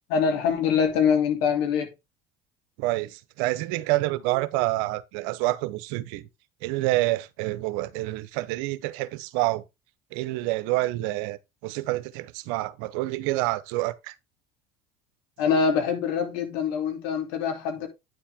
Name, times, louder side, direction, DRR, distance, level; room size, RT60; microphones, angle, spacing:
voice 1, 0.1-1.9 15.4-17.9, left 6 dB, 80° left, 2.9 m, -24 dB
voice 2, 2.8-6.3 6.6-9.6 10.1-11.4 11.6-14.1, right 18 dB, 80° right, 0.9 m, -27 dB
9.6 x 7.3 x 3.6 m
supercardioid pair, 85°, 12 cm